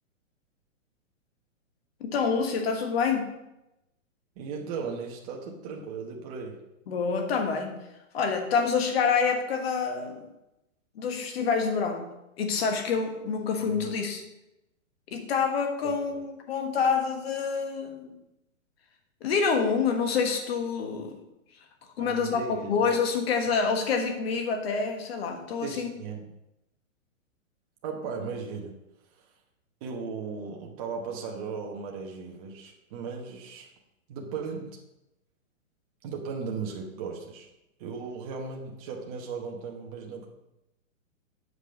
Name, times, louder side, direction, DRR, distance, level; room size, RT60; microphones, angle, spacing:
voice 1, 2.0-3.3 6.9-7.8 8.1-10.3 10.9-14.2 15.1-18.1 19.2-21.2 22.0-25.9, left 5 dB, 50° left, 4 dB, 1.5 m, -27 dB
voice 2, 4.4-6.6 13.8-14.0 15.8-16.2 22.0-22.7 25.6-26.3 27.8-28.7 29.8-33.7 34.1-34.8 36.0-37.5 37.8-40.3, right 5 dB, 30° right, 0 dB, 1.1 m, -36 dB
8.2 x 5.1 x 5.2 m, 0.91 s
hypercardioid pair, 160°, 40 cm